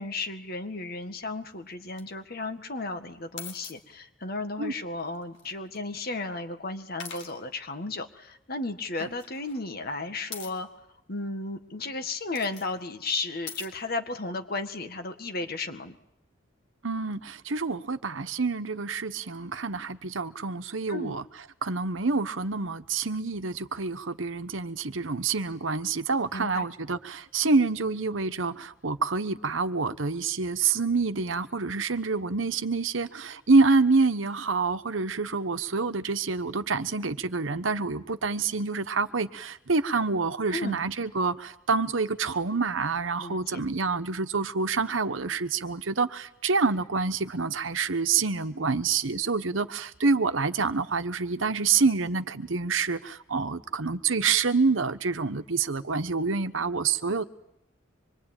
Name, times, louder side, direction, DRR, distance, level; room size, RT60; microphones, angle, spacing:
voice 1, 0.0-10.7 11.1-16.0 20.9-21.2 26.3-26.7 40.5-40.8 43.2-43.6, left 3 dB, 50° left, 7 dB, 1.8 m, -34 dB
sound 1, 1.7-2.0 3.4-3.8 5.1-5.8 7.0-7.4 9.2-9.6 10.3-10.5 12.1-12.7 13.5-13.7, left 7 dB, 70° left, 4.0 m, -41 dB
voice 2, 16.8-21.2 21.6-57.2, right 4 dB, 85° right, 10 dB, 1.1 m, -27 dB
25.5 x 23.0 x 9.0 m, 0.80 s
head